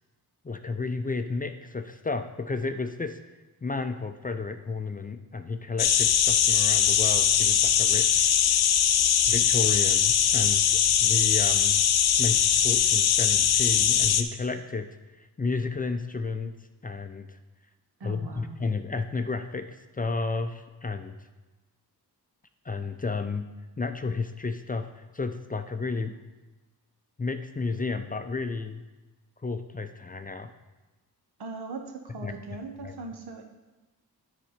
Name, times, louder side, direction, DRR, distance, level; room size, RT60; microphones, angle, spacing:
voice 1, 0.4-3.2 3.6-8.7 9.3-11.8 12.2-14.9 15.2-16.5 16.8-17.4 18.0-21.2 22.6-23.5 23.8-26.1 27.2-28.8 29.4-30.5 32.2-32.3 32.8-32.9, left 4 dB, 25° left, 8 dB, 0.4 m, -32 dB
sound 1, 5.8-14.2, left 9 dB, 70° left, 0.6 m, -21 dB
voice 2, 18.0-18.6 31.4-33.4, right 3 dB, 80° right, 4 dB, 1.1 m, -39 dB
9.2 x 4.2 x 5.0 m, 1.1 s
cardioid pair, 80°, 39 cm